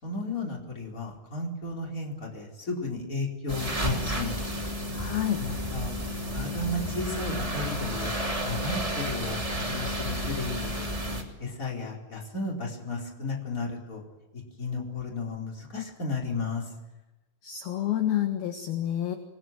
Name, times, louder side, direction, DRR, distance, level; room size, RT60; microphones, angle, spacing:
voice 1, 0.0-4.5 5.4-6.0 6.3-10.9 11.4-14.0 14.3-16.7, left 3 dB, 15° left, -1 dB, 4.3 m, -34 dB
sound 1, 3.5-11.2, equal, 10° right, 1.7 m, -31 dB
voice 2, 4.9-5.4 17.4-19.2, left 11 dB, 60° left, 5 dB, 2.8 m, -28 dB
27.0 x 21.0 x 9.3 m, 1.0 s
omnidirectional pair, 6.0 m